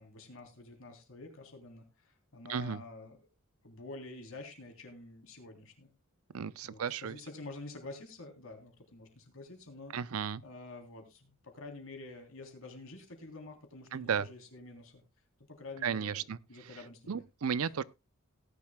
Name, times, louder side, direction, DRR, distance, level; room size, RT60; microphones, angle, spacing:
voice 1, 0.0-3.2 3.6-5.9 6.6-9.9 10.4-15.0 15.5-16.2 16.5-17.2 17.6-17.7, left 2 dB, 65° left, 3.3 m, -48 dB
voice 2, 2.5-2.8 6.3-7.2 9.9-10.4 13.9-14.3 15.8-16.4 17.1-17.8, right 7 dB, 75° right, 0.5 m, -34 dB
18.0 x 11.0 x 2.2 m
head